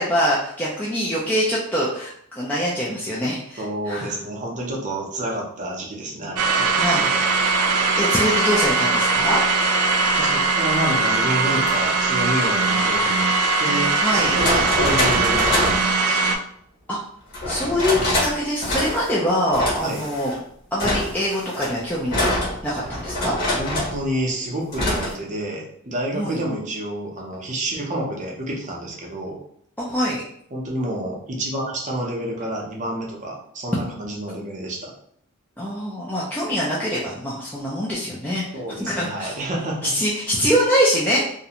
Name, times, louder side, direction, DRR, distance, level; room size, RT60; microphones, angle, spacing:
voice 1, 0.0-4.2 6.7-7.1 8.0-9.4 14.0-14.3 16.9-17.0 17.5-20.3 20.7-22.2 22.6-23.4 26.1-26.4 29.8-30.2 35.6-38.4 38.8-39.3 39.8-41.3, equal, 10° left, -6 dB, 0.4 m, -24 dB
voice 2, 3.6-6.7 10.1-13.3 13.6-16.3 19.8-20.0 22.7-22.8 23.5-29.4 30.5-34.9 38.5-39.9, right 1 dB, 35° right, -1 dB, 0.6 m, -29 dB
sound 1, 6.4-16.4, right 3 dB, 85° right, 0.4 m, -20 dB
sound 2, 11.5-11.7 13.3-13.4 14.1-15.9 17.3-18.3 18.6-19.2 19.5-20.4 20.8-24.0 24.7-25.1, left 1 dB, 50° left, 1.3 m, -24 dB
2.4 x 2.1 x 2.8 m, 0.66 s
head